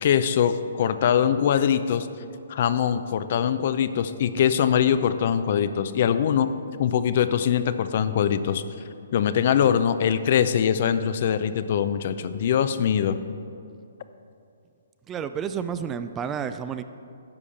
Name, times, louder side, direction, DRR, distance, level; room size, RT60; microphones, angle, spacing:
voice 1, 0.0-2.1 2.5-6.5 6.8-8.6 9.1-13.2, left 8 dB, 50° left, 12 dB, 0.5 m, -22 dB
voice 2, 15.1-16.8, right 7 dB, 20° right, 11 dB, 0.3 m, -30 dB
10.5 x 4.9 x 7.0 m, 2.5 s
hypercardioid pair, 140°, 0 cm